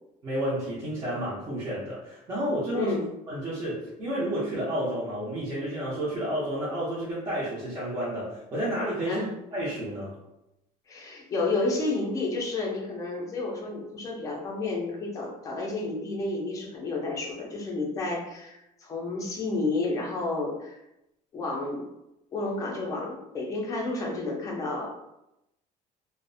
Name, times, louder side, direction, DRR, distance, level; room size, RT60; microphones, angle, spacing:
voice 1, 0.2-2.9 3.3-10.2, right 1 dB, 25° right, -9 dB, 0.6 m, -31 dB
voice 2, 2.7-3.1 9.1-9.3 10.9-20.8 21.3-21.8 22.3-25.0, left 2 dB, 20° left, -2 dB, 0.5 m, -31 dB
2.4 x 2.0 x 2.5 m, 0.87 s
cardioid pair, 175°, 15 cm